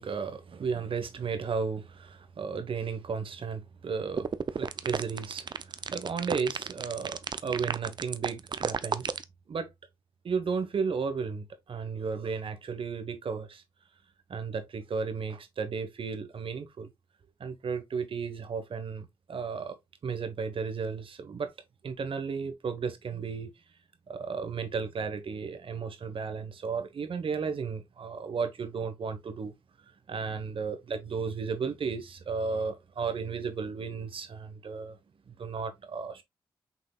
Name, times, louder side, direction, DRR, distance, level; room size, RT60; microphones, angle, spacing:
voice 1, 0.0-9.2 9.5-9.7 10.2-13.6 14.3-16.9 17.4-19.8 20.0-21.5 21.8-23.5 24.1-29.5 30.1-35.0 35.3-36.2, right 5 dB, 65° right, 1.1 m, -34 dB
sound 1, 4.2-9.2, right 6 dB, 50° right, 0.5 m, -32 dB
5.9 x 3.7 x 2.3 m
cardioid pair, 60°, 10 cm